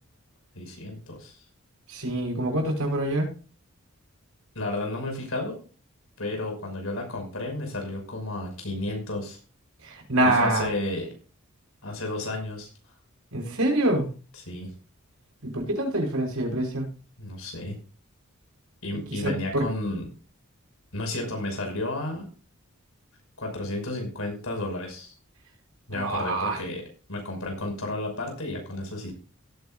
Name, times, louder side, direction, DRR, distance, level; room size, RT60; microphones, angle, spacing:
voice 1, 0.5-1.4 4.5-5.6 6.2-9.4 10.2-11.1 11.8-12.7 14.5-14.7 17.2-17.8 18.8-20.1 20.9-22.3 23.4-25.1 25.9-26.8 27.1-29.1, left 2 dB, 75° left, 2 dB, 5.9 m, -32 dB
voice 2, 1.9-3.3 9.8-10.7 13.3-14.1 15.4-16.9 19.1-19.7 25.9-26.6, right 1 dB, 85° right, 1 dB, 5.8 m, -25 dB
17.5 x 9.8 x 2.5 m, 0.37 s
head